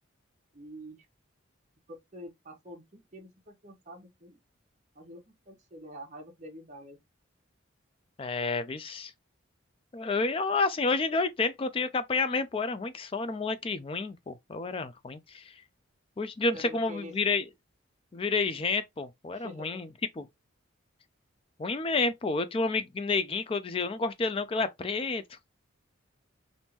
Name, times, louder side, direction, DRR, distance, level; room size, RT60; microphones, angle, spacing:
voice 1, 0.5-1.1 1.9-4.4 4.9-7.0 16.5-17.1 19.3-19.8, equal, 35° right, 1.0 m, -46 dB
voice 2, 8.2-9.1 9.9-15.5 16.2-17.4 18.1-19.9 20.2-20.3 21.6-25.2, left 3 dB, 25° left, 0.3 m, -30 dB
3.5 x 2.6 x 2.8 m
head